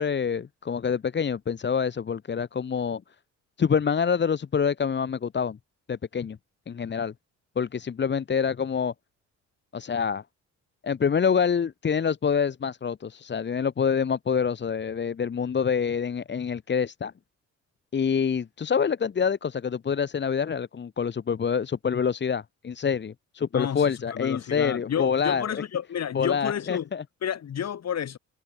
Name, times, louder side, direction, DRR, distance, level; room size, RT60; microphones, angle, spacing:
voice 1, 0.0-3.0 3.6-5.6 5.9-6.4 6.7-7.1 7.6-8.9 9.7-10.2 10.8-17.1 17.9-25.6 26.1-27.0, left 6 dB, 35° left, 1.2 m, -26 dB
voice 2, 23.5-26.9 27.2-28.2, left 9 dB, 60° left, 5.5 m, -30 dB
cardioid pair, 90°, 30 cm